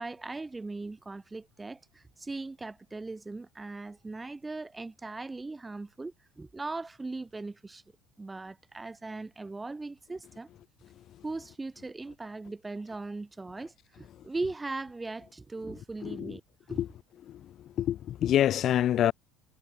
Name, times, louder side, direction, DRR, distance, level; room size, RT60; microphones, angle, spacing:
voice 1, 0.0-7.8 8.2-10.5 11.2-16.4 16.7-16.8, right 3 dB, 10° right, 1.4 m, -39 dB
voice 2, 16.0-16.4 16.7-16.9 17.2-19.1, left 11 dB, 40° left, 0.7 m, -27 dB
cardioid pair, 170°, 0 cm